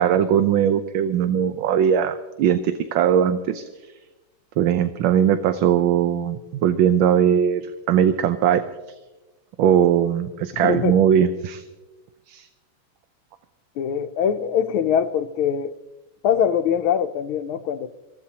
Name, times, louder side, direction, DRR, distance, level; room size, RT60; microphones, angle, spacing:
voice 1, 0.0-3.6 4.6-8.6 9.6-11.6 12.3-12.5, right 9 dB, 75° right, 9 dB, 1.4 m, -20 dB
voice 2, 10.6-11.0 13.8-15.7 16.2-17.9, left 8 dB, 80° left, 10 dB, 1.5 m, -22 dB
26.0 x 15.0 x 2.9 m, 1.1 s
omnidirectional pair, 2.3 m